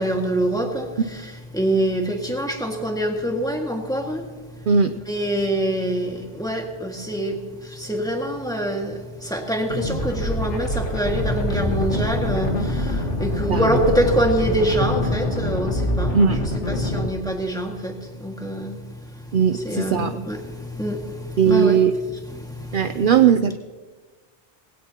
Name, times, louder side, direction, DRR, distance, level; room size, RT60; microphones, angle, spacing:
voice 1, 0.0-4.6 5.1-23.1, right 1 dB, 5° left, 1 dB, 1.9 m, -25 dB
sound 1, 9.7-17.1, left 1 dB, 85° left, 2.0 m, -25 dB
voice 2, 19.3-20.1 21.4-21.9 22.7-23.6, right 7 dB, 55° right, 10 dB, 0.7 m, -18 dB
20.5 x 17.0 x 2.9 m, 1.4 s
omnidirectional pair, 1.2 m